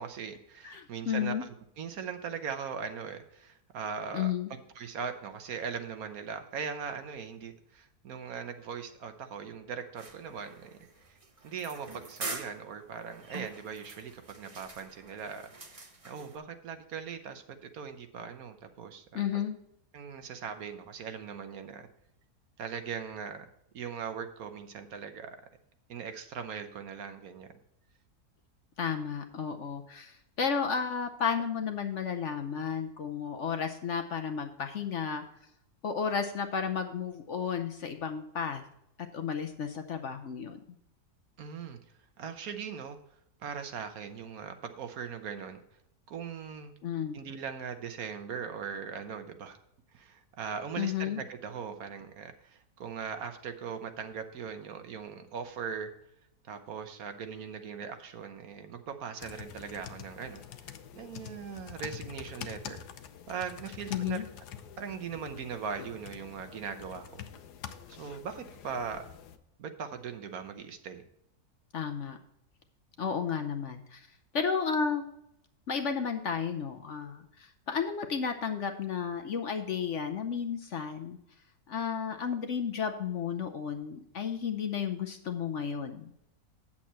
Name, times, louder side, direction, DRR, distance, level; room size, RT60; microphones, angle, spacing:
voice 1, 0.0-1.5 1.8-10.8 11.1-11.2 11.4-19.4 19.9-21.9 22.6-23.5 23.7-25.3 25.9-27.5 41.4-41.8 42.2-43.0 43.4-45.6 46.1-46.7 47.1-49.6 49.9-55.9 56.4-60.4 60.9-62.8 63.3-64.2 64.8-67.2 67.9-69.0 69.6-71.0, right 6 dB, 65° right, 8 dB, 1.3 m, -40 dB
voice 2, 0.6-1.4 4.1-4.5 19.1-19.6 28.8-35.2 35.8-38.6 39.1-40.6 46.8-47.2 50.8-51.2 63.9-64.2 71.7-72.2 73.0-74.1 74.3-75.0 75.7-81.2 81.7-86.1, left 6 dB, 60° left, 6 dB, 0.9 m, -33 dB
sound 1, 10.0-16.4, right 3 dB, 25° right, 0.9 m, -44 dB
sound 2, 59.2-69.4, left 9 dB, 80° left, 1.3 m, -46 dB
8.5 x 7.3 x 4.3 m, 0.78 s
omnidirectional pair, 1.7 m